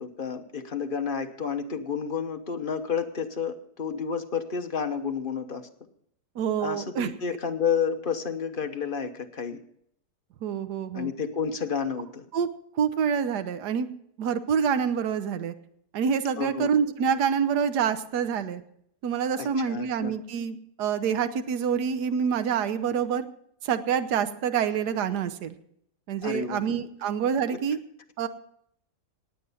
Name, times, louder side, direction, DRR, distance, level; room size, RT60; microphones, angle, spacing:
voice 1, 0.0-5.6 6.6-9.6 10.9-12.2 16.4-16.7 19.4-20.1 26.2-26.6, left 6 dB, 35° left, 7 dB, 1.1 m, -30 dB
voice 2, 6.4-7.1 10.4-11.1 12.3-12.5 12.8-13.9 14.2-15.5 15.9-18.6 19.0-23.2 23.6-25.5 26.1-27.8 28.2-28.3, right 7 dB, 70° right, 11 dB, 1.5 m, -27 dB
19.0 x 8.5 x 5.6 m, 0.69 s
omnidirectional pair, 1.8 m